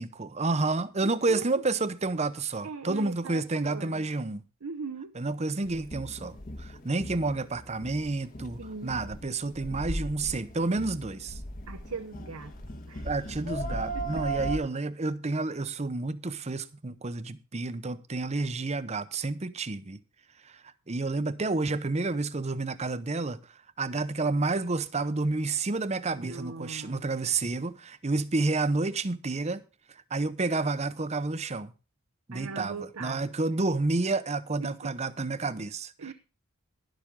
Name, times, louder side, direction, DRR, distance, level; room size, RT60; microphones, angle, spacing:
voice 1, 0.0-4.4 5.2-11.4 13.0-20.0 20.4-20.6 20.9-23.4 23.8-29.6 29.9-31.7 32.3-35.9, right 3 dB, 30° right, 0.7 m, -30 dB
voice 2, 1.0-1.5 2.6-4.0 4.6-5.1 8.6-9.0 11.7-13.1 13.7-14.3 26.1-27.1 32.3-33.3 34.6-34.9 36.0-36.1, right 4 dB, 90° right, 0.9 m, -40 dB
sound 1, 5.6-14.6, right 1 dB, 40° left, 1.3 m, -38 dB
11.5 x 11.5 x 3.6 m
head